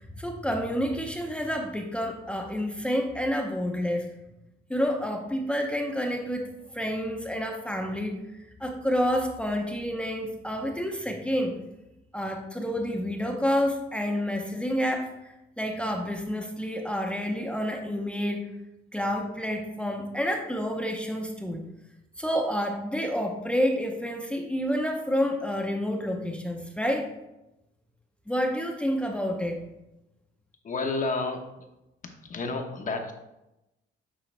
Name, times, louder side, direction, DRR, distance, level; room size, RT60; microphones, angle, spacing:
voice 1, 0.0-4.1 4.7-6.5 6.7-8.2 8.6-11.6 12.1-15.1 15.6-18.5 18.9-21.6 22.2-27.1 28.3-29.6, equal, 5° left, 1 dB, 0.8 m, -29 dB
voice 2, 30.6-31.7 32.0-33.1, left 3 dB, 40° left, 4 dB, 1.0 m, -31 dB
8.8 x 3.8 x 3.3 m, 0.93 s
cardioid pair, 90°, 20 cm